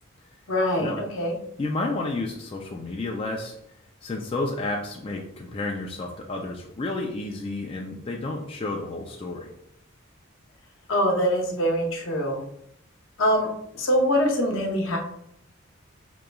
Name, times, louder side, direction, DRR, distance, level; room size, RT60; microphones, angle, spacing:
voice 1, 0.5-1.3 10.9-12.4 13.2-13.5 13.7-15.0, equal, 65° left, 1 dB, 0.8 m, -23 dB
voice 2, 1.6-3.6 4.0-9.5, left 2 dB, 25° left, 0 dB, 0.4 m, -31 dB
5.0 x 3.0 x 2.2 m, 0.71 s
head